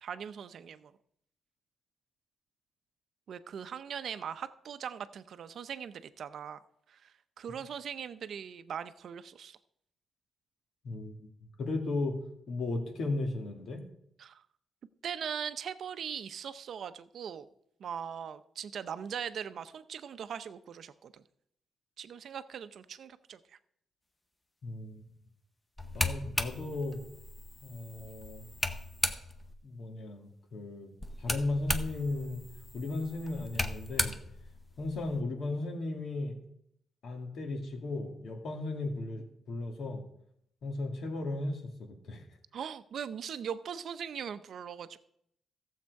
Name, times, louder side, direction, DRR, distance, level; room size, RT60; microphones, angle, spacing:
voice 1, 0.0-0.9 3.3-6.6 6.9-9.6 14.2-14.4 15.0-17.5 17.8-21.2 22.0-23.6 42.5-45.0, right 8 dB, 55° right, 13 dB, 0.6 m, -40 dB
voice 2, 10.8-12.2 12.5-13.8 24.6-25.0 25.9-27.0 27.6-28.5 29.6-30.9 31.2-32.4 32.7-34.2 34.8-36.4 37.0-40.0 40.6-42.2, left 2 dB, 60° left, 4 dB, 2.0 m, -36 dB
sound 1, 25.8-29.5 31.0-35.2, left 1 dB, 10° left, 0.8 m, -36 dB
15.0 x 7.4 x 4.7 m, 0.73 s
cardioid pair, 145°, 0 cm